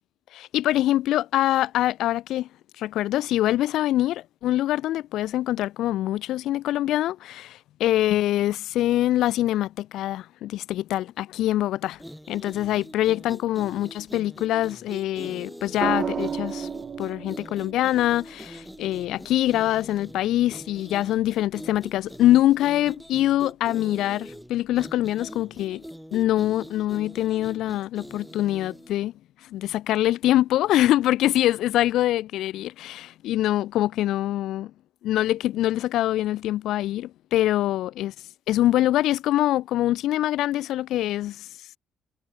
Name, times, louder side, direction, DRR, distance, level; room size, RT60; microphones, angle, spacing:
voice 1, 0.3-2.5 2.8-12.0 12.3-16.7 17.0-25.8 26.1-29.1 29.4-34.7 35.0-38.1 38.5-41.5, left 14 dB, 70° left, 2.6 m, -24 dB
sound 1, 11.9-29.0, equal, ahead, 6.3 m, -43 dB
sound 2, 15.8-19.9 21.6-22.0, right 7 dB, 35° right, 3.5 m, -33 dB
cardioid pair, 165°, 0 cm